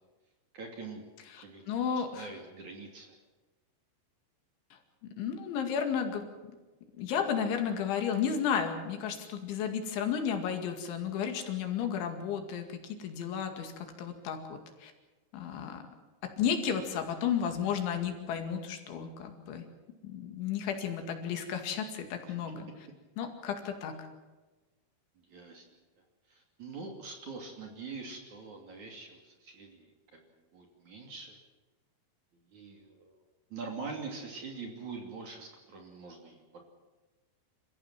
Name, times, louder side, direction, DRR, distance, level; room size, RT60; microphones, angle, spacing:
voice 1, 0.5-1.0 1.4-1.6 1.9-3.2 22.3-22.4 25.3-25.6 26.3-30.2 30.5-31.4 32.5-33.2 33.5-36.6, right 4 dB, 45° right, 3 dB, 3.5 m, -44 dB
voice 2, 1.3-2.3 5.2-6.5 7.0-14.9 15.3-15.8 16.2-19.7 20.0-22.7 23.2-24.1, left 7 dB, 75° left, 5 dB, 4.5 m, -33 dB
28.0 x 15.5 x 7.5 m, 1.2 s
omnidirectional pair, 5.6 m